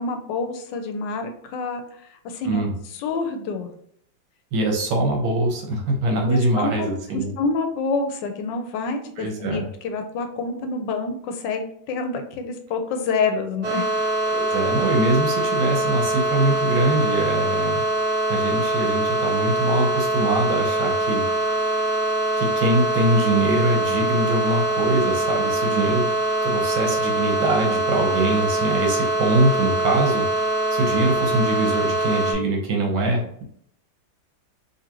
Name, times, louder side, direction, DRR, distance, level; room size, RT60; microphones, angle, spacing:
voice 1, 0.0-1.8 2.1-2.6 2.9-3.7 6.2-13.8, left 4 dB, 75° left, 6 dB, 1.2 m, -27 dB
voice 2, 2.4-2.8 4.5-7.3 9.2-9.7 14.3-17.8 18.3-21.6 22.4-26.1 26.4-30.3 30.7-33.4, right 2 dB, 85° right, 1 dB, 1.7 m, -23 dB
sound 1, 13.6-32.3, right 2 dB, 65° right, 1.4 m, -23 dB
3.9 x 3.0 x 2.9 m, 0.67 s
omnidirectional pair, 2.1 m